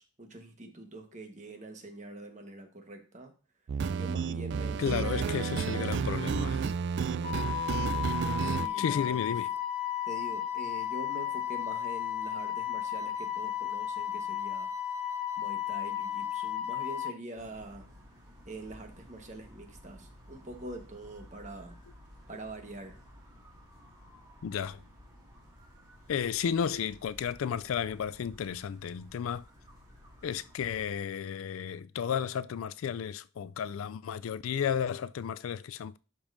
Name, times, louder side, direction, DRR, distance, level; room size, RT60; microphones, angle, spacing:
voice 1, 0.0-3.3 4.0-5.5 8.4-9.2 10.1-14.7 15.4-17.8 18.4-21.8 22.3-23.0, right 2 dB, 35° right, 1.3 m, -44 dB
sound 1, 3.7-8.7, right 5 dB, 55° right, 0.3 m, -31 dB
voice 2, 4.8-6.7 8.8-9.5 24.4-24.8 26.1-29.5 30.2-36.0, left 7 dB, 75° left, 0.3 m, -33 dB
Wind instrument woodwind instrument, 7.2-17.1, left 10 dB, 85° right, 1.0 m, -34 dB
sound 2, 17.4-30.9, equal, 20° right, 2.0 m, -54 dB
12.0 x 5.4 x 2.6 m
head